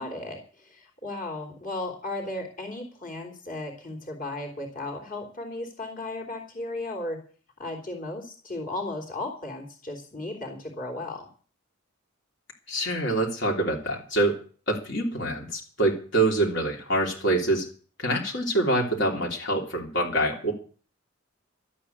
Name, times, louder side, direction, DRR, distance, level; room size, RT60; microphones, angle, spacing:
voice 1, 0.0-7.2 7.6-11.3, left 2 dB, 40° left, 1 dB, 3.4 m, -35 dB
voice 2, 12.7-14.4 14.7-17.6 18.0-20.5, right 1 dB, 60° left, -1 dB, 3.3 m, -25 dB
13.0 x 8.5 x 8.7 m, 0.41 s
head